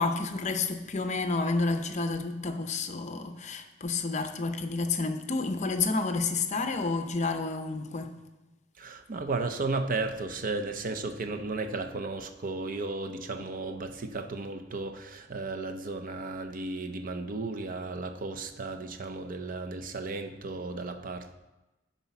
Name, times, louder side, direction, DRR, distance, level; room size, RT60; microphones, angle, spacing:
voice 1, 0.0-8.1, left 3 dB, 40° left, 0.6 m, -30 dB
voice 2, 8.8-21.3, right 3 dB, 45° right, 0.6 m, -34 dB
9.8 x 4.1 x 5.9 m
head